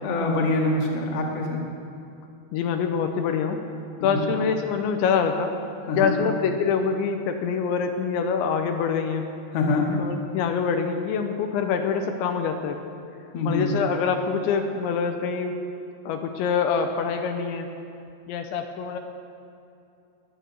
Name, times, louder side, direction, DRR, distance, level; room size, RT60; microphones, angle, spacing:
voice 1, 0.0-1.6 4.0-4.3 5.9-6.2 9.5-9.9 13.3-13.7, left 2 dB, 50° left, -1 dB, 2.1 m, -25 dB
voice 2, 2.5-3.6 4.0-5.6 6.0-9.3 10.0-12.8 13.5-15.6 16.1-17.7 18.3-19.0, left 6 dB, 85° left, 5 dB, 3.0 m, -25 dB
21.5 x 9.0 x 6.3 m, 2.6 s
omnidirectional pair, 5.4 m